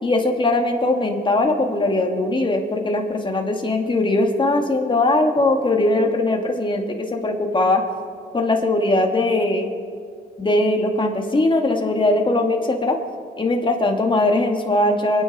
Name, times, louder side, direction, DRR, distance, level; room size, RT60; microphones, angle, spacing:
voice 1, 0.0-7.8 8.3-9.7 10.4-13.0 13.4-15.2, left 2 dB, 25° left, 2 dB, 2.3 m, -20 dB
27.5 x 9.9 x 4.3 m, 2.3 s
cardioid pair, 90°, 20 cm